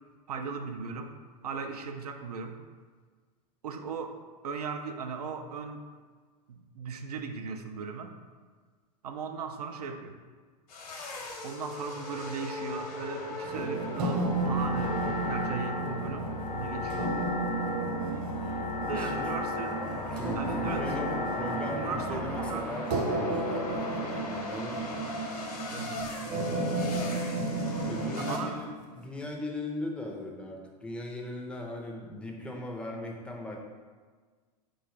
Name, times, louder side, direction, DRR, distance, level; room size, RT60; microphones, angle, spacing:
voice 1, 0.3-1.1 1.4-2.6 3.6-5.8 6.5-8.1 9.0-10.2 11.4-15.0 15.3-17.4 18.9-20.0 20.3-20.9 21.8-22.8 25.7-26.1 28.1-28.6, right 5 dB, 65° right, 6 dB, 0.4 m, -37 dB
sound 1, 10.7-28.4, left 2 dB, 60° left, 0.8 m, -39 dB
sound 2, 13.4-29.2, right 2 dB, 45° right, 0.9 m, -33 dB
sound 3, 14.3-22.5, left 3 dB, 80° left, 0.5 m, -36 dB
voice 2, 18.9-19.6 19.9-25.0 27.9-33.6, left 2 dB, 5° left, 0 dB, 0.5 m, -39 dB
3.9 x 2.3 x 4.4 m, 1.5 s
figure-of-eight pair, 95°, 21 cm